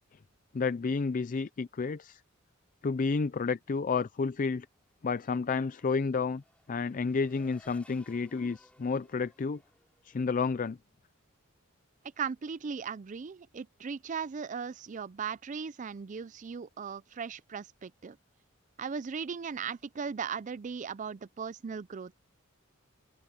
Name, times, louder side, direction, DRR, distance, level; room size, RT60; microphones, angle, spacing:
voice 1, 0.5-2.2 2.8-4.7 5.0-6.4 6.7-9.6 10.0-10.8, left 4 dB, 40° left, 0.4 m, -30 dB
Race car auto racing / Accelerating revving vroom, 4.6-10.7, left 1 dB, 5° left, 5.4 m, -62 dB
voice 2, 12.2-18.2 18.8-22.2, right 6 dB, 35° right, 0.4 m, -38 dB
open air
head